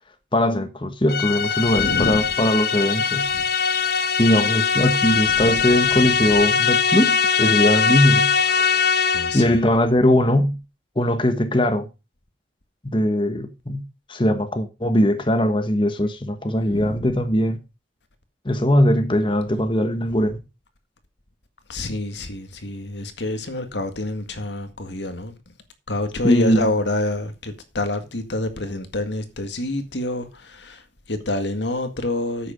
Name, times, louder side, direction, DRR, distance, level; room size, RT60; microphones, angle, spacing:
voice 1, 0.3-3.3 4.2-9.0 9.3-10.6 11.0-11.9 12.8-13.8 14.1-17.6 18.4-20.4 26.2-26.7, left 1 dB, 25° left, 1.2 m, -20 dB
sound 1, 1.1-9.6, left 6 dB, 55° left, 1.0 m, -21 dB
voice 2, 1.6-2.3 3.3-4.1 5.3-5.8 9.1-9.6 16.6-17.2 21.7-25.3 25.9-32.5, left 2 dB, 80° left, 2.0 m, -28 dB
10.0 x 8.4 x 5.2 m
head